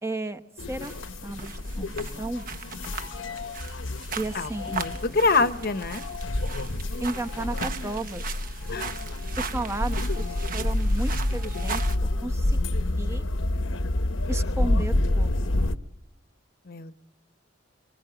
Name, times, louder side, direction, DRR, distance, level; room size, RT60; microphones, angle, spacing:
voice 1, 0.0-0.4 0.7-0.9 1.2-2.4 4.2-4.8 7.0-8.4 9.4-10.3 10.5-11.8 12.2-12.6 13.0-13.3 14.3-15.3, right 2 dB, 15° right, 8 dB, 1.0 m, -33 dB
sound 1, 0.6-15.8, left 1 dB, 80° left, 1.0 m, -28 dB
sound 2, 0.8-12.0, right 5 dB, 45° right, 1.1 m, -38 dB
voice 2, 4.3-6.0 8.7-8.9 16.7-16.9, left 3 dB, 50° left, 11 dB, 0.9 m, -25 dB
26.5 x 24.5 x 8.9 m, 0.85 s
head